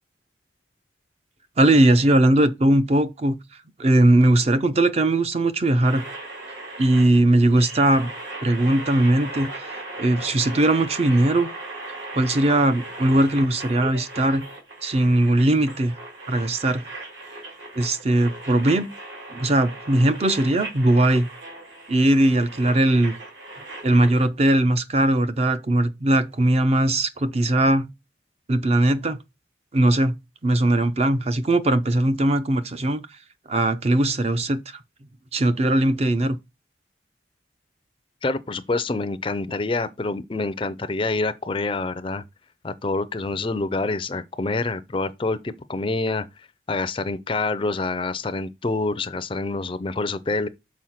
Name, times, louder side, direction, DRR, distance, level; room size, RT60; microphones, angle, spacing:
voice 1, 1.6-3.4 3.8-6.1 6.8-8.1 8.4-11.5 12.1-14.4 14.8-16.0 16.3-16.9 17.8-18.9 19.3-21.3 21.9-23.1 23.8-27.9 28.5-29.2 29.7-30.2 30.4-33.0 33.5-34.8 35.3-36.4, right 1 dB, 35° right, 0.5 m, -19 dB
sound 1, 5.8-24.3, right 2 dB, 75° right, 2.7 m, -38 dB
voice 2, 38.2-42.2 42.6-50.5, left 3 dB, 25° left, 0.4 m, -27 dB
6.2 x 4.6 x 5.7 m
head